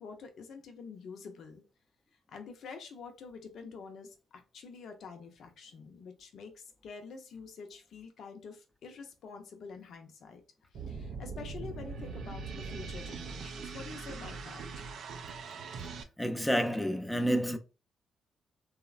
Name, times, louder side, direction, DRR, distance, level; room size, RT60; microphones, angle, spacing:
voice 1, 0.0-1.6 2.3-4.2 4.5-10.4 10.7-14.9, left 5 dB, 65° left, 0.5 m, -47 dB
sound 1, 10.7-16.0, right 4 dB, 70° right, 0.3 m, -41 dB
voice 2, 16.2-17.6, equal, 5° left, 0.5 m, -29 dB
2.9 x 2.0 x 2.4 m
supercardioid pair, 55°, 0 cm